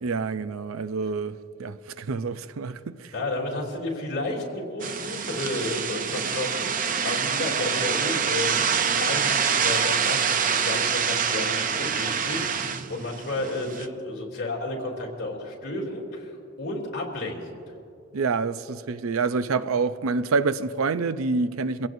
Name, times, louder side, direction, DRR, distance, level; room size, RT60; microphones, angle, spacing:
voice 1, 0.0-3.1 18.1-21.9, right 4 dB, 90° right, 0.5 m, -27 dB
voice 2, 3.1-16.3 16.6-17.6, left 2 dB, 50° left, 3.2 m, -32 dB
sound 1, 4.8-13.9, right 7 dB, 40° right, 0.5 m, -26 dB
24.0 x 16.5 x 2.7 m
head